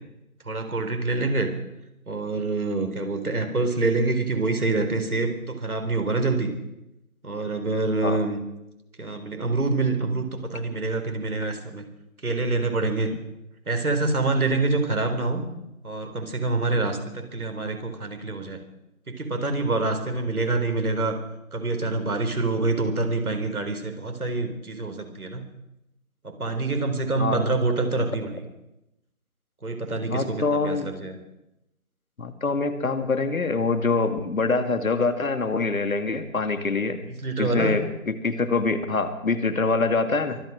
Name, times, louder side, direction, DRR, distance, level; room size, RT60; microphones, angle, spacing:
voice 1, 0.5-1.5 2.1-6.5 7.2-8.4 9.0-11.8 12.2-13.1 13.7-15.4 15.8-18.6 19.1-21.2 21.5-25.5 26.2-28.4 29.6-31.2 37.2-37.8, right 3 dB, 80° right, 5 dB, 4.2 m, -26 dB
voice 2, 30.1-30.9 32.2-37.0 37.4-40.4, left 3 dB, 70° left, 9 dB, 2.2 m, -25 dB
24.0 x 9.4 x 6.5 m, 0.87 s
figure-of-eight pair, 165°, 43 cm